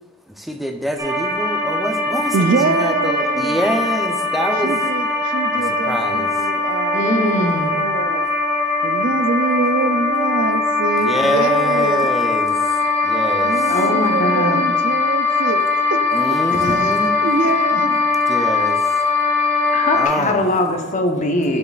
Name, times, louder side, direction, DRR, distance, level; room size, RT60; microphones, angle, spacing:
voice 1, 0.3-4.8 5.6-6.5 11.0-12.8 13.0-13.8 16.1-17.1 18.3-18.9 19.9-20.6, equal, ahead, 3 dB, 0.5 m, -25 dB
sound 1, 1.0-20.1, left 3 dB, 15° right, 1.3 m, -20 dB
voice 2, 2.3-3.6 4.6-8.3 8.8-12.2 13.4-15.6 15.9-16.0 17.2-18.0, right 4 dB, 80° right, 10 dB, 0.4 m, -24 dB
voice 3, 6.9-7.7 13.7-14.6 16.5-16.9 17.7-17.8 19.7-21.6, left 1 dB, 40° left, 4 dB, 0.7 m, -21 dB
8.6 x 6.2 x 2.3 m, 1.2 s
head